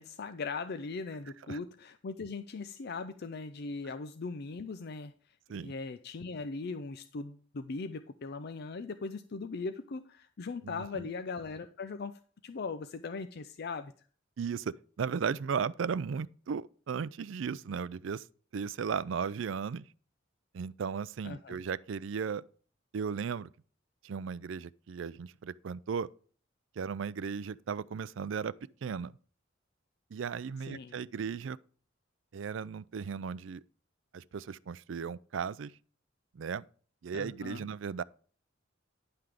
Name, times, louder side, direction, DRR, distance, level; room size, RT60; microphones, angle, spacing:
voice 1, 0.0-5.1 5.6-13.9 21.2-21.6 30.7-31.0 37.1-37.7, left 4 dB, 55° left, 0.5 m, -39 dB
voice 2, 10.6-11.0 14.4-18.2 18.5-19.8 20.5-22.4 22.9-23.5 24.0-26.1 26.8-28.5 28.8-29.1 30.1-31.6 32.3-33.6 34.1-35.7 36.3-36.6 37.0-38.0, right 6 dB, 70° right, 0.4 m, -36 dB
10.5 x 5.8 x 4.9 m
head